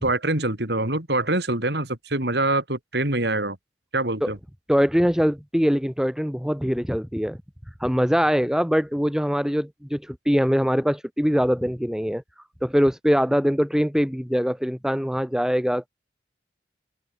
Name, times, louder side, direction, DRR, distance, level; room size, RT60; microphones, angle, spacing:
voice 1, 0.0-3.6 3.9-4.4, right 2 dB, 65° right, 4.3 m, -24 dB
voice 2, 4.7-7.4 7.8-12.2 12.6-15.9, equal, 5° right, 1.9 m, -22 dB
open air
head